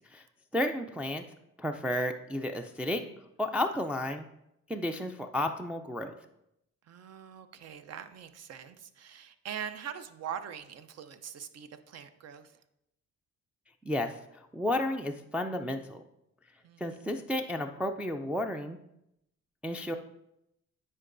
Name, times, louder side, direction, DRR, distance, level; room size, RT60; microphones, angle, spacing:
voice 1, 0.5-1.2 1.6-3.0 3.4-4.3 4.7-6.1 13.9-14.1 14.5-16.0 16.8-18.8 19.6-20.0, left 1 dB, 5° right, 3 dB, 0.3 m, -32 dB
voice 2, 6.9-12.5 16.6-16.9, right 8 dB, 55° right, 11 dB, 0.6 m, -42 dB
9.6 x 4.5 x 2.6 m, 0.82 s
cardioid pair, 90°, 30 cm